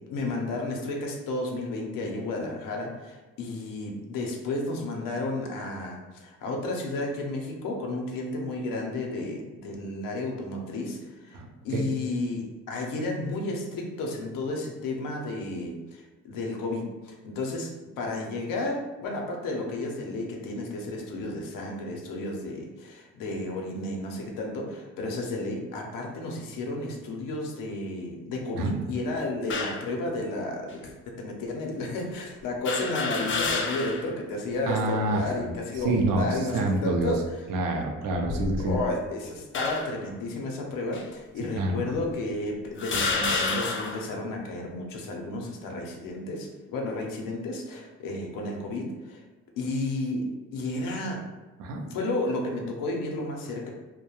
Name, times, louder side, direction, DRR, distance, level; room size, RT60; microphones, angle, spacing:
voice 1, 0.0-11.4 11.6-37.4 38.6-49.2 49.6-50.3 50.5-51.2 51.9-53.7, left 2 dB, 85° left, 0 dB, 0.6 m, -32 dB
voice 2, 11.3-11.9 28.5-28.8 34.7-35.5 35.8-36.3 36.5-37.1 37.5-38.7 41.6-41.8 51.6-51.8, right 2 dB, 85° right, 2 dB, 0.5 m, -27 dB
sound 1, 29.5-29.9 30.7-30.8 32.6-34.1 34.5-34.6 35.8-36.2 36.9-37.2 38.1-38.9 39.5-40.0 40.9-41.1 41.9-42.0 42.8-44.1, left 3 dB, 40° left, 0.4 m, -30 dB
2.3 x 2.1 x 2.9 m, 1.2 s
cardioid pair, 85°, 32 cm